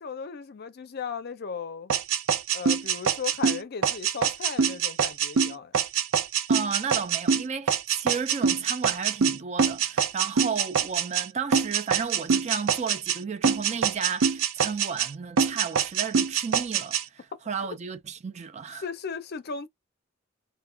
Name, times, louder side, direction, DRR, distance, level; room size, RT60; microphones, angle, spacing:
voice 1, 0.0-1.9 2.5-5.8 17.3-17.4 18.8-19.7, left 6 dB, 50° left, 0.5 m, -36 dB
sound 1, 1.9-11.3 11.5-13.2 13.4-15.1 15.4-17.0, right 6 dB, 90° right, 0.5 m, -24 dB
voice 2, 6.5-18.8, right 6 dB, 35° right, 0.4 m, -33 dB
2.3 x 2.1 x 3.2 m
head